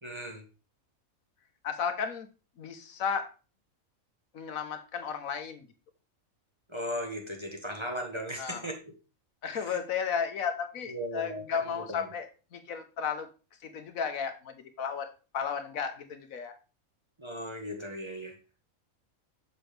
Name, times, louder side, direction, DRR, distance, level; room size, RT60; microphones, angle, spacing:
voice 1, 0.0-0.4 6.7-8.9 9.5-9.8 10.9-12.1 17.2-18.3, equal, 20° right, 2 dB, 1.0 m, -37 dB
voice 2, 1.6-2.3 2.6-3.3 4.3-5.7 8.4-8.7 9.4-13.3 13.6-16.5, left 6 dB, 75° left, 8 dB, 1.3 m, -34 dB
6.8 x 6.1 x 3.3 m, 0.33 s
omnidirectional pair, 1.5 m